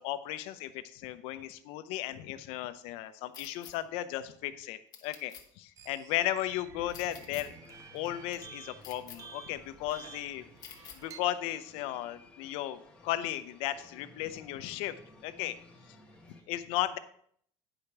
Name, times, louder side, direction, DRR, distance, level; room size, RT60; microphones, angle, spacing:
voice 1, 0.0-7.5 7.9-10.4 11.0-15.0 15.2-15.6 16.5-17.0, left 13 dB, 60° left, 12 dB, 0.6 m, -35 dB
sound 1, 3.3-3.7 4.9-5.4 6.9-7.4 8.8-9.2 10.6-11.0, left 9 dB, 35° left, 1.2 m, -47 dB
sound 2, 5.8-11.2, right 6 dB, 30° right, 0.5 m, -51 dB
sound 3, 6.9-16.4, left 2 dB, 10° left, 1.0 m, -57 dB
voice 2, 9.9-11.2 15.7-16.5, right 3 dB, 80° right, 0 dB, 3.1 m, -62 dB
9.8 x 5.0 x 5.9 m, 0.64 s
cardioid pair, 180°, 11 cm